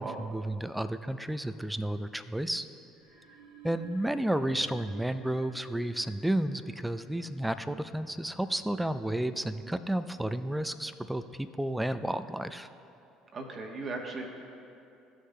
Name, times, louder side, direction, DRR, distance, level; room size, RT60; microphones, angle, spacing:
voice 1, 0.0-2.7 3.6-12.7, right 1 dB, 5° right, 12 dB, 0.4 m, -32 dB
sound 1, 2.9-9.8, right 3 dB, 75° right, 1.0 m, -54 dB
voice 2, 13.3-14.3, right 3 dB, 40° right, 1 dB, 1.1 m, -37 dB
14.0 x 6.5 x 2.2 m, 2.7 s
hypercardioid pair, 60°, 0 cm